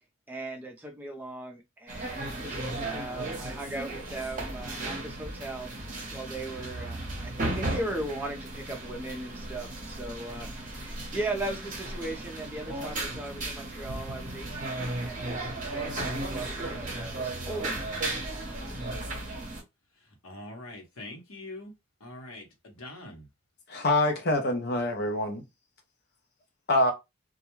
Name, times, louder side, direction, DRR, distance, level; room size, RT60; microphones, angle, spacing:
voice 1, 0.3-18.0, right 2 dB, 10° right, 0.5 m, -38 dB
sound 1, 1.9-19.6, right 2 dB, 35° right, 0.8 m, -35 dB
voice 2, 20.2-21.7 22.0-23.3, left 2 dB, 80° left, 1.0 m, -43 dB
voice 3, 23.7-25.4 26.7-26.9, left 1 dB, 50° left, 0.5 m, -25 dB
2.3 x 2.1 x 3.0 m
head